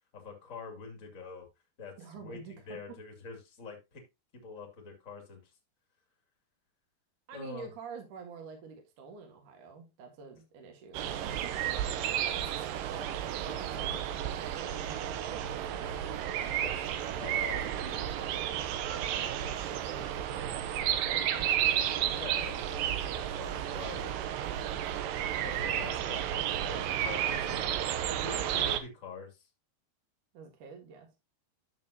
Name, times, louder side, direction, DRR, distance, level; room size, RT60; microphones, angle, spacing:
voice 1, 0.1-1.5 1.8-2.4 2.7-4.0 4.4-5.5 7.3-7.7 15.8-16.8 17.1-17.6 21.3-21.5 21.8-24.2 25.4-27.6 28.1-29.5, left 4 dB, 25° left, 1.9 m, -45 dB
voice 2, 2.0-2.8 7.3-15.4 17.5-22.2 30.3-31.1, right 5 dB, 55° right, 2.7 m, -48 dB
sound 1, 10.9-28.8, right 10 dB, 85° right, 2.0 m, -32 dB
11.0 x 7.1 x 2.8 m
omnidirectional pair, 4.9 m